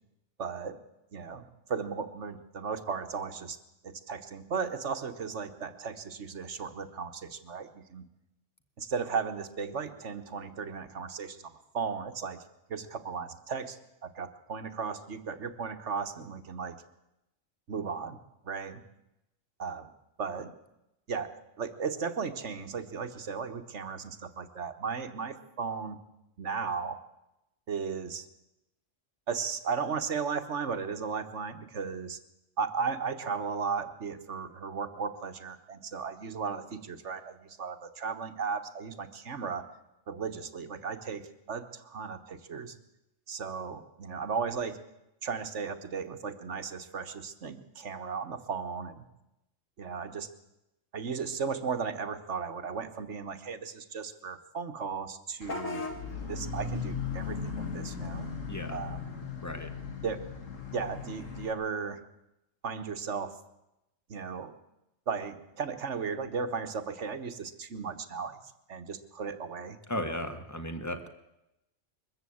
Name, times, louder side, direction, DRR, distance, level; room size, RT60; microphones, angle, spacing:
voice 1, 0.4-0.8 1.1-3.6 3.8-8.0 8.8-12.4 12.7-16.7 17.7-18.2 18.4-18.8 19.6-19.9 20.2-20.5 21.1-21.3 21.6-26.0 26.4-27.0 27.7-28.3 29.3-32.2 32.6-39.6 40.1-41.2 41.5-42.7 43.3-44.8 45.2-49.0 49.8-50.3 50.9-55.8 56.3-58.3 58.7-59.0 60.0-60.2 60.7-62.0 62.6-63.4 64.1-64.5 65.1-68.4 68.7-69.8, right 5 dB, 65° right, 8 dB, 1.6 m, -35 dB
Vehicle horn car horn honking / Bus, 55.4-61.5, left 5 dB, 80° left, 2.3 m, -37 dB
voice 2, 58.5-58.8 59.4-59.7 69.9-71.1, left 1 dB, 15° left, 7 dB, 1.7 m, -35 dB
22.0 x 14.0 x 8.6 m, 0.89 s
omnidirectional pair, 1.3 m